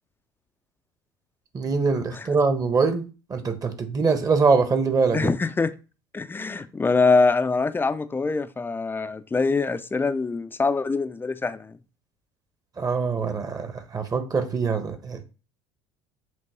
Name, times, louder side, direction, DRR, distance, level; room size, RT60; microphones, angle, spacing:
voice 1, 1.5-3.0 3.3-5.3 12.8-15.2, right 4 dB, 30° right, 8 dB, 1.2 m, -23 dB
voice 2, 5.1-5.7 6.1-11.8, left 4 dB, 15° left, 12 dB, 0.6 m, -24 dB
7.6 x 3.1 x 4.4 m, 0.33 s
hypercardioid pair, 75°, 13 cm